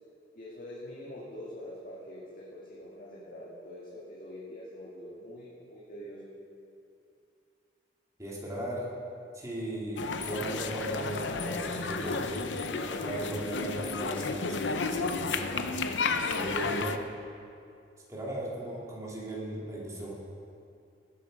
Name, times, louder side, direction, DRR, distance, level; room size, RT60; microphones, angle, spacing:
voice 1, 0.4-6.2, left 1 dB, 50° left, -7 dB, 2.1 m, -44 dB
voice 2, 8.2-8.9 9.3-12.5 12.9-15.8 16.3-17.0 18.1-20.1, right 1 dB, 20° right, -5 dB, 2.5 m, -37 dB
sound 1, 10.0-17.0, left 4 dB, 85° left, 0.7 m, -32 dB
19.0 x 8.5 x 5.2 m, 2.6 s
head